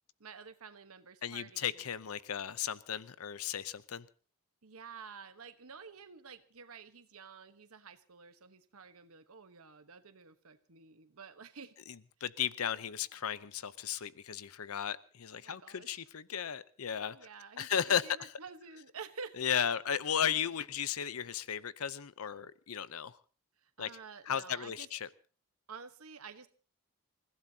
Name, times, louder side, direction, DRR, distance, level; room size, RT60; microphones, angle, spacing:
voice 1, 0.2-1.8 4.6-11.7 15.4-16.0 17.1-19.3 23.6-24.9 25.7-26.5, right 5 dB, 80° right, 1.1 m, -50 dB
voice 2, 1.2-4.0 11.9-17.2 17.6-18.3 19.4-23.2 23.8-23.9 24.3-25.1, left 8 dB, 80° left, 0.7 m, -35 dB
28.5 x 16.0 x 2.8 m
head